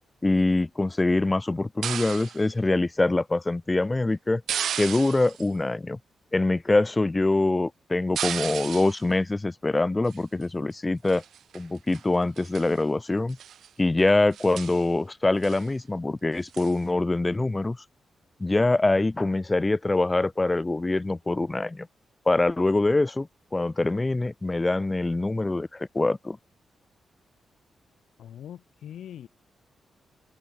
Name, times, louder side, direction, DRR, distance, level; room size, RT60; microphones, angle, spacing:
voice 1, 0.2-4.4 4.8-6.0 6.3-11.2 11.5-13.4 13.8-17.8 18.4-21.9 22.3-26.4, left 2 dB, 20° left, 0.6 m, -24 dB
sound 1, 1.8-2.4 4.5-5.5 8.2-9.0 10.1-10.4 11.0-11.6 11.9-12.0 12.4-12.8 13.3-13.7 14.0-14.1 14.3-14.9 15.4-15.7 16.5-16.8, right 9 dB, 80° right, 0.4 m, -34 dB
voice 2, 28.2-29.3, left 10 dB, 85° left, 1.8 m, -42 dB
open air
cardioid pair, 70°, 0 cm